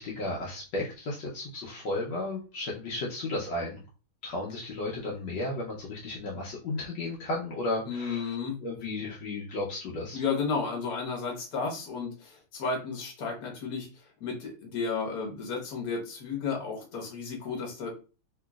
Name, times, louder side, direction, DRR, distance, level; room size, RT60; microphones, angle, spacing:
voice 1, 0.0-3.8 4.2-8.2 8.6-10.2, left 2 dB, 70° left, -4 dB, 1.4 m, -34 dB
voice 2, 7.9-8.6 10.1-17.9, left 5 dB, 55° left, 0 dB, 1.4 m, -33 dB
3.4 x 2.9 x 2.3 m, 0.33 s
omnidirectional pair, 2.2 m